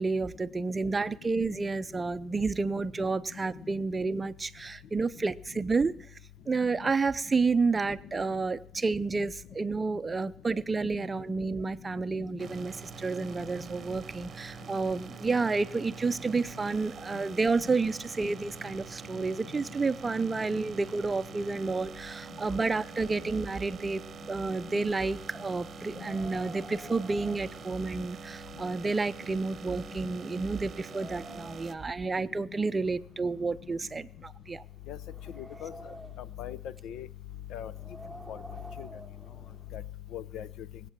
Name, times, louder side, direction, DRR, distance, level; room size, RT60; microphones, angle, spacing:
voice 1, 0.0-5.9 6.5-24.0 24.3-34.6, right 4 dB, 25° right, 14 dB, 0.6 m, -30 dB
sound 1, 12.4-31.7, right 7 dB, 45° right, 0.9 m, -46 dB
Wind, 25.9-28.5 28.8-28.9 29.6-29.7 30.2-31.8 32.7-34.2 34.8-36.4 37.6-39.8, right 1 dB, ahead, 1.5 m, -49 dB
voice 2, 35.4-35.8 36.2-36.6 36.8-37.1 37.5-37.7 38.3-38.4 38.8-38.9 39.7-39.8 40.1-40.5, left 10 dB, 70° left, 17 dB, 0.7 m, -41 dB
19.5 x 8.3 x 7.5 m, 0.65 s
cardioid pair, 90°, 0 cm